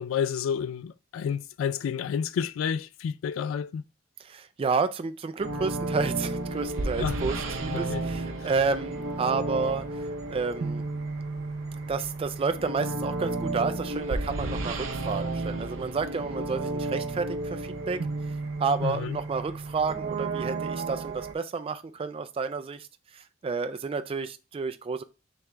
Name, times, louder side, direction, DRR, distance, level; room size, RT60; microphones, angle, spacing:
voice 1, 0.0-3.8 7.0-7.2 7.7-8.1 8.4-8.5 18.8-19.2, left 7 dB, 85° left, 0.3 m, -30 dB
voice 2, 4.2-10.8 11.9-18.1 18.6-22.9 23.1-25.0, right 4 dB, 30° right, 0.3 m, -30 dB
sound 1, 5.4-21.3, right 2 dB, 80° right, 0.6 m, -32 dB
3.5 x 3.0 x 3.3 m
head